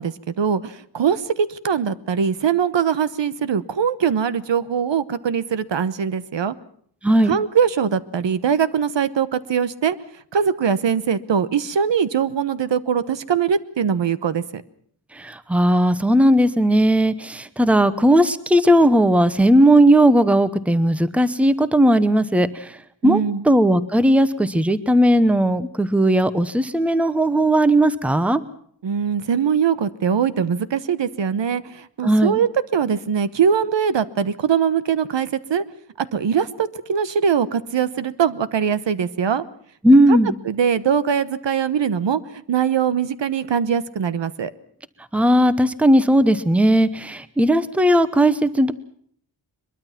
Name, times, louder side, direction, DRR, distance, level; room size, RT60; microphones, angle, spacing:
voice 1, 0.0-6.5 7.2-10.0 10.3-14.6 23.0-23.4 28.8-35.6 36.0-39.4 40.1-40.2 40.4-44.5, right 7 dB, 65° right, 15 dB, 1.1 m, -22 dB
voice 2, 7.0-7.3 15.1-22.8 23.0-23.2 23.4-28.4 32.0-32.4 39.8-40.3 45.1-48.7, right 1 dB, 5° right, 14 dB, 0.9 m, -17 dB
22.5 x 22.5 x 5.8 m, 0.63 s
wide cardioid pair, 160°, 47 cm